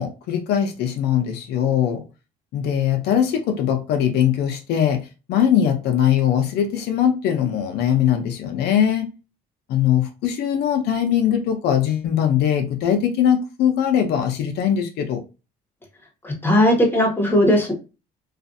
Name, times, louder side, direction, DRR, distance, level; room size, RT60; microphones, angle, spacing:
voice 1, 0.0-2.0 2.5-9.1 9.7-15.2, left 9 dB, 75° left, 0.5 m, -21 dB
voice 2, 16.2-17.7, left 1 dB, 10° left, 1.1 m, -17 dB
2.4 x 2.4 x 2.6 m
cardioid pair, 110°, 17 cm